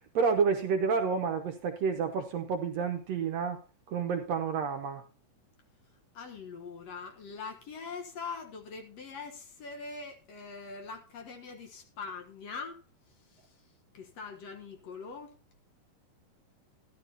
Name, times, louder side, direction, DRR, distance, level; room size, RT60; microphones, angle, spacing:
voice 1, 0.2-3.6 3.9-5.0, right 5 dB, 70° right, 1.7 m, -29 dB
voice 2, 6.1-12.8 13.1-13.6 13.9-15.4, left 4 dB, 60° left, 2.0 m, -43 dB
13.5 x 12.0 x 2.8 m
omnidirectional pair, 3.8 m